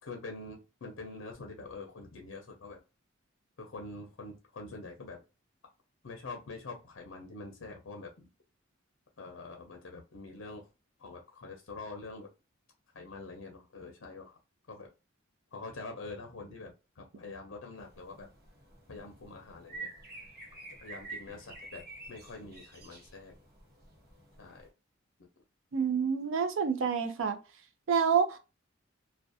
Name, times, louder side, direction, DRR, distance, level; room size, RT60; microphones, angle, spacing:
voice 1, 0.0-2.8 3.6-5.2 6.0-8.3 9.2-10.6 11.0-12.3 12.9-14.4 14.7-14.9 15.5-18.3 18.9-19.9 20.8-21.8 22.1-23.4 24.4-24.7, left 3 dB, 80° left, 0.6 m, -45 dB
sound 1, 17.8-24.7, right 3 dB, 50° right, 0.9 m, -49 dB
voice 2, 25.7-27.4 27.9-28.4, right 6 dB, 75° right, 0.5 m, -28 dB
2.4 x 2.1 x 2.5 m
head